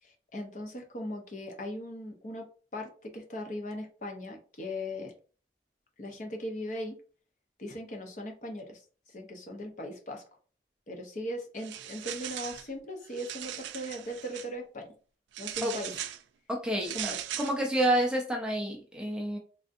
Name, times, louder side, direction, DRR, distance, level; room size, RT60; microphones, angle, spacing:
voice 1, 0.0-5.1 6.0-7.0 7.6-8.8 9.1-10.2 10.9-14.9 15.4-16.0 16.9-17.2, equal, 40° left, 3 dB, 0.6 m, -39 dB
sound 1, 11.6-12.7 13.1-14.5 15.3-16.2 16.8-17.6, right 11 dB, 80° right, 0.3 m, -39 dB
voice 2, 16.5-19.4, right 1 dB, 5° right, 0 dB, 0.4 m, -29 dB
3.4 x 2.6 x 2.5 m, 0.39 s
head